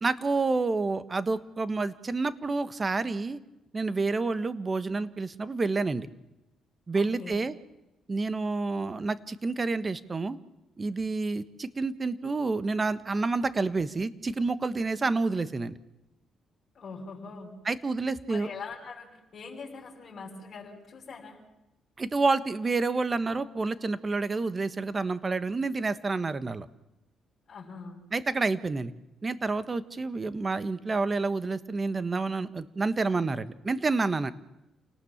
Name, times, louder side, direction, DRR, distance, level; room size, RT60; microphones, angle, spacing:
voice 1, 0.0-3.4 3.7-6.1 6.9-7.5 8.1-10.4 10.8-15.8 17.6-18.5 22.0-26.7 28.1-28.9 29.2-34.3, right 3 dB, 30° right, 13 dB, 1.4 m, -29 dB
voice 2, 6.9-7.4 16.7-17.5 18.3-21.4 27.5-28.0, left 4 dB, 45° left, -2 dB, 6.1 m, -42 dB
28.5 x 18.5 x 7.3 m, 0.96 s
cardioid pair, 90°, 0 cm